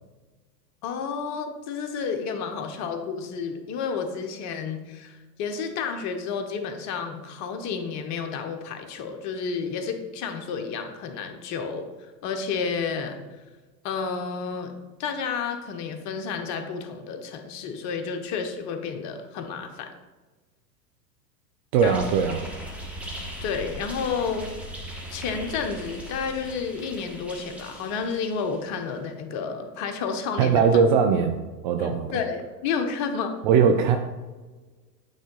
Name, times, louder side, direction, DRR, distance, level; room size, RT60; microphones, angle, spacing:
voice 1, 0.8-11.9 12.2-13.2 13.8-14.7 15.0-19.9 21.8-22.1 23.4-24.5 25.1-30.8 31.8-33.4, left 5 dB, 35° left, 6 dB, 0.9 m, -31 dB
voice 2, 21.7-22.4 30.4-31.3 31.6-32.1 33.4-34.0, right 6 dB, 35° right, 5 dB, 0.4 m, -20 dB
sound 1, 21.8-28.8, equal, 5° right, 1.3 m, -39 dB
8.6 x 3.7 x 3.8 m, 1.3 s
hypercardioid pair, 105°, 49 cm